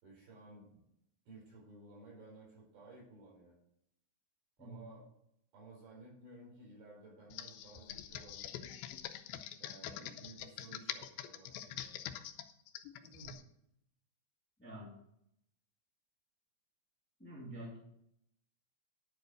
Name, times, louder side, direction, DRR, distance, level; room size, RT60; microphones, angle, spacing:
voice 1, 0.0-0.8 1.3-3.6 4.6-5.1 5.5-8.7 9.6-12.0 13.0-13.4, right 2 dB, 75° right, -4 dB, 6.6 m, -55 dB
voice 2, 4.6-4.9 14.6-14.9 17.2-17.8, right 1 dB, 5° left, -4 dB, 2.0 m, -48 dB
Computer keyboard, 7.3-13.4, left 11 dB, 85° left, 2.5 m, -45 dB
10.5 x 5.4 x 6.4 m, 0.77 s
omnidirectional pair, 4.3 m